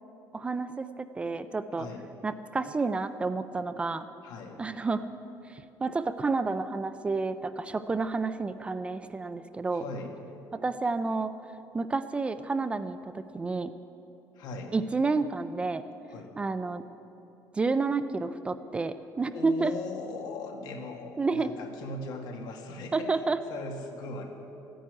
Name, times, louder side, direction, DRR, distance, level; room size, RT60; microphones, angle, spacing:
voice 1, 0.3-1.9 2.2-4.1 4.6-5.0 5.5-9.8 10.5-11.3 11.7-13.7 14.7-15.8 16.4-16.8 17.5-19.7 21.2-21.5 22.9-23.4, right 3 dB, 15° right, 11 dB, 0.4 m, -30 dB
voice 2, 1.8-2.1 4.2-4.6 9.7-10.1 14.4-14.7 16.1-16.3 19.3-23.1 23.5-24.3, left 3 dB, 70° left, 3 dB, 2.0 m, -39 dB
14.5 x 10.0 x 9.7 m, 3.0 s
cardioid pair, 165°, 7 cm